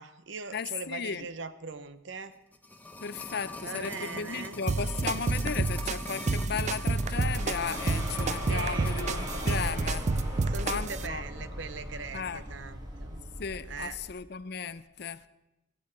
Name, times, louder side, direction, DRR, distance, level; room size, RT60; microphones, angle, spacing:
voice 1, 0.0-2.4 3.6-4.6 8.5-9.0 10.4-13.3 13.6-14.0, right 4 dB, 75° right, 0.8 m, -40 dB
voice 2, 0.5-1.3 3.0-10.1 10.6-11.2 12.1-12.4 13.4-15.2, left 6 dB, 60° left, 0.6 m, -35 dB
sound 1, 2.3-9.7 10.0-10.1, left 2 dB, 10° left, 1.0 m, -42 dB
sound 2, 4.7-11.1, right 3 dB, 40° right, 0.4 m, -30 dB
sound 3, 7.0-14.1, equal, 20° right, 2.0 m, -38 dB
16.0 x 15.0 x 4.5 m
head